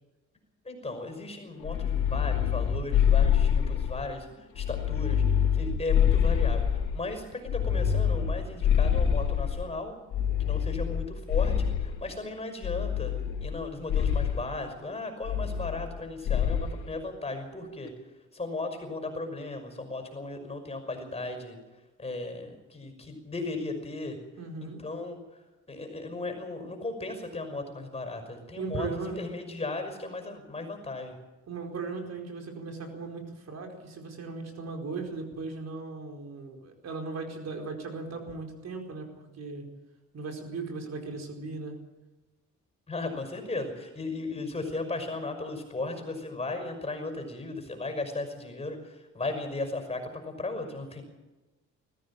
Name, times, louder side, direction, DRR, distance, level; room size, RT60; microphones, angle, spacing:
voice 1, 0.6-6.7 6.9-9.9 10.4-13.1 13.4-17.9 18.3-21.6 22.0-24.2 24.6-25.4 25.7-31.2 42.9-51.0, left 2 dB, 20° left, 6 dB, 5.7 m, -36 dB
sound 1, 1.6-4.1 4.5-7.0 7.5-9.6 10.1-12.0 12.6-13.6 13.9-14.4 15.2-16.0 16.3-16.7, left 8 dB, 80° left, 3.7 m, -26 dB
voice 2, 24.4-24.8 28.6-29.3 31.5-39.7 40.1-41.7, right 3 dB, 60° right, 3 dB, 4.7 m, -37 dB
20.5 x 14.5 x 8.8 m, 1.1 s
cardioid pair, 90°, 30 cm